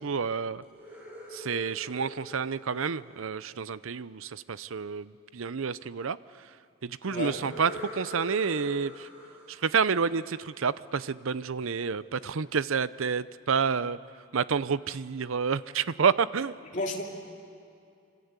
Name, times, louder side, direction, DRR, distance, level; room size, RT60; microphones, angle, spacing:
voice 1, 0.0-0.6 1.3-6.2 6.8-9.1 9.5-14.0 14.3-16.5, right 6 dB, 75° right, 17 dB, 0.6 m, -29 dB
sound 1, 0.6-3.6 7.2-11.0, equal, 10° right, 5.7 m, -45 dB
voice 2, 7.1-7.4 16.7-17.0, left 2 dB, 35° left, 0 dB, 2.9 m, -31 dB
27.0 x 26.5 x 8.2 m, 2.4 s
head